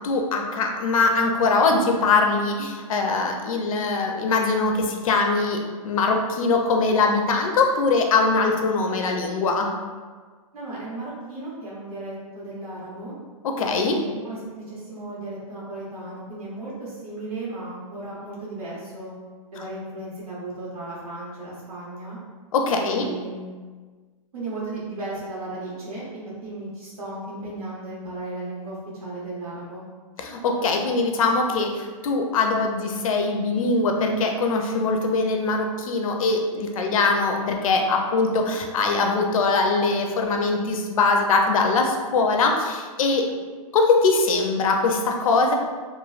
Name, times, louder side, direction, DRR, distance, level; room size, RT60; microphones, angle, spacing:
voice 1, 0.0-9.7 13.4-14.0 22.5-23.1 30.2-43.3 43.7-45.5, left 3 dB, 70° left, 3 dB, 0.5 m, -22 dB
voice 2, 10.5-13.1 13.8-19.1 19.5-22.2 22.8-23.6 24.3-29.8, right 2 dB, 85° right, -7 dB, 1.3 m, -35 dB
3.1 x 2.2 x 2.4 m, 1.5 s
hypercardioid pair, 155°, 18 cm